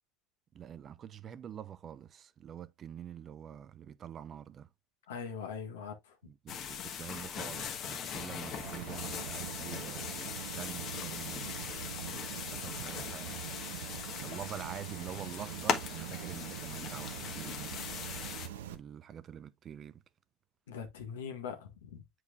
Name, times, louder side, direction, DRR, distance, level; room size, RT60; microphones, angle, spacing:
voice 1, 0.5-4.7 6.2-11.5 12.5-13.4 14.2-17.8 18.7-20.0, right 9 dB, 40° right, 0.7 m, -46 dB
voice 2, 5.1-6.2 20.7-22.1, left 6 dB, 85° left, 1.7 m, -41 dB
sound 1, 6.5-18.5, left 7 dB, 50° left, 1.3 m, -40 dB
sound 2, 8.6-18.7, right 11 dB, 85° right, 0.8 m, -43 dB
8.2 x 4.7 x 2.5 m
hypercardioid pair, 85°, 0 cm